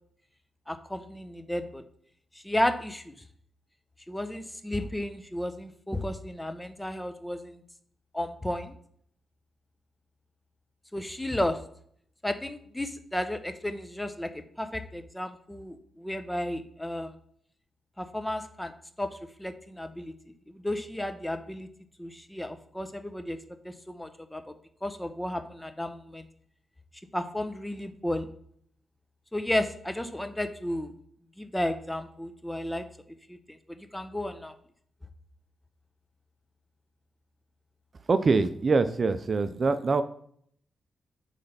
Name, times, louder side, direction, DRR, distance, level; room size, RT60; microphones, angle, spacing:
voice 1, 0.7-1.8 2.4-3.1 4.1-7.6 8.1-8.7 10.9-11.6 12.2-17.1 18.0-18.7 19.0-20.1 20.5-21.7 22.0-23.4 23.6-24.5 24.8-26.3 27.1-28.3 29.3-30.9 31.4-32.9 33.3-33.4 33.8-34.5, left 1 dB, 10° left, 9 dB, 0.8 m, -33 dB
voice 2, 38.1-40.0, right 4 dB, 50° right, 11 dB, 0.5 m, -24 dB
7.9 x 3.3 x 5.7 m, 0.64 s
cardioid pair, 60°, 0 cm